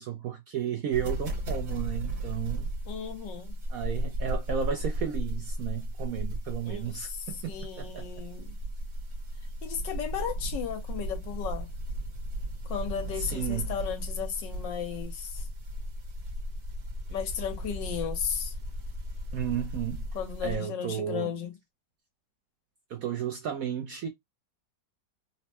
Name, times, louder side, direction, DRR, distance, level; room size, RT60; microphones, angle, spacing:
voice 1, 0.0-2.7 3.7-8.1 13.2-13.7 19.3-20.1 20.4-21.3 22.9-24.1, right 9 dB, 70° right, 0.8 m, -33 dB
sound 1, 0.9-20.6, equal, 45° right, 1.2 m, -35 dB
voice 2, 2.9-3.5 6.6-8.5 9.6-11.7 12.6-15.4 17.1-18.5 20.1-21.5, left 8 dB, 75° left, 1.5 m, -35 dB
4.2 x 2.1 x 2.8 m
omnidirectional pair, 2.0 m